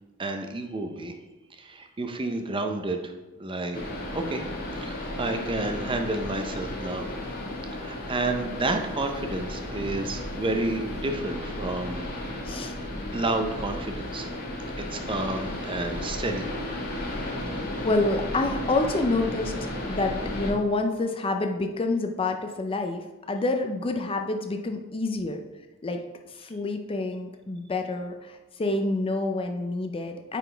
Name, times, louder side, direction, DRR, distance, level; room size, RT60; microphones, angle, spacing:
voice 1, 0.2-1.1 1.5-3.1 3.4-3.8 4.1-4.4 4.7-7.1 7.8-12.0 13.1-14.3 14.8-16.5, right 2 dB, 25° right, 5 dB, 0.6 m, -30 dB
sound 1, 3.7-20.5, left 1 dB, 45° left, 1.2 m, -34 dB
voice 2, 17.8-19.5 19.9-25.4 25.8-26.0 26.3-30.4, left 2 dB, 25° left, 5 dB, 0.4 m, -28 dB
9.1 x 4.1 x 3.3 m, 1.1 s
head